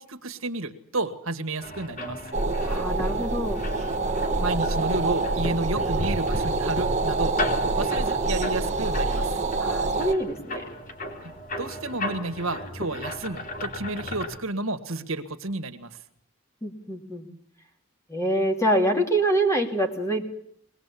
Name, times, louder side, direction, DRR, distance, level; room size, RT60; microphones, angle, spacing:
voice 1, 0.0-2.2 4.4-9.4 11.2-16.0, right 2 dB, 90° right, 7 dB, 1.8 m, -31 dB
sound 1, 1.6-14.4, left 1 dB, 40° left, 3.9 m, -36 dB
sound 2, 2.3-10.1, right 3 dB, 35° right, 1.5 m, -26 dB
voice 2, 2.6-3.6 9.6-10.6 16.6-17.3 18.1-20.3, right 1 dB, 15° left, 3 dB, 2.8 m, -25 dB
22.5 x 20.0 x 8.5 m, 0.68 s
head